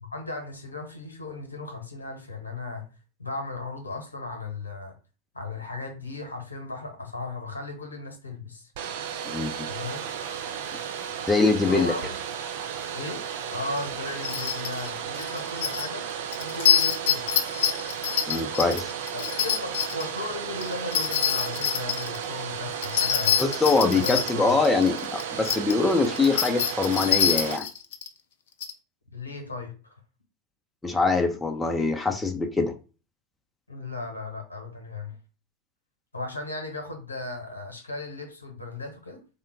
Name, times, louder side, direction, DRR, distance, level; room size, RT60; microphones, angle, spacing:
voice 1, 0.0-2.9 3.2-5.0 5.3-8.7 9.7-10.1 11.6-12.2 12.9-13.3 13.5-16.1 16.4-17.3 19.1-23.4 23.9-24.6 29.1-29.9 33.7-35.2 36.1-39.2, left 3 dB, 85° left, 1.0 m, -36 dB
Domestic sounds home sounds, 8.7-27.6, right 8 dB, 60° right, 0.4 m, -34 dB
voice 2, 9.2-9.7 11.3-11.9 18.3-18.9 23.4-27.7 30.8-32.7, left 3 dB, 10° left, 0.6 m, -23 dB
sound 1, 13.8-13.9 14.2-14.9 15.1-15.9 16.3-20.0 20.6-22.2 22.8-25.7 26.0-28.1 28.6-28.7, left 9 dB, 60° left, 0.5 m, -25 dB
3.7 x 2.2 x 3.6 m
figure-of-eight pair, 85°, 0 cm